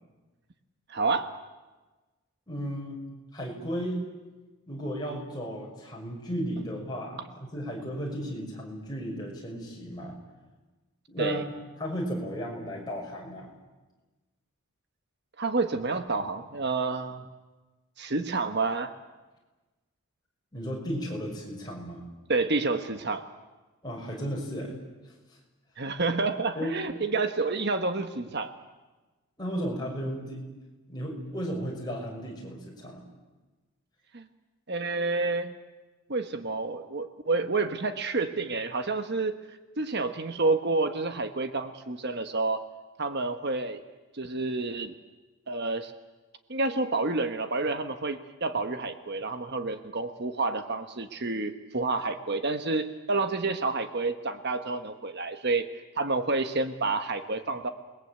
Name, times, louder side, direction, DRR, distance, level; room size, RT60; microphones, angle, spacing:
voice 1, 0.9-1.3 11.2-11.4 15.4-17.3 18.0-18.9 22.3-23.2 25.8-28.5 34.1-34.2 34.7-35.5 36.1-39.3 39.8-42.6 43.0-43.8 44.1-44.9 45.5-45.9 46.5-55.6 56.0-57.7, right 3 dB, 50° right, 8 dB, 1.2 m, -29 dB
voice 2, 2.5-3.0 3.3-4.0 4.7-10.2 11.1-11.4 11.8-13.5 20.5-22.0 23.8-24.7 26.5-26.8 29.4-30.4 30.9-33.0, equal, 20° left, -2 dB, 6.2 m, -34 dB
28.0 x 21.0 x 8.2 m, 1.2 s
head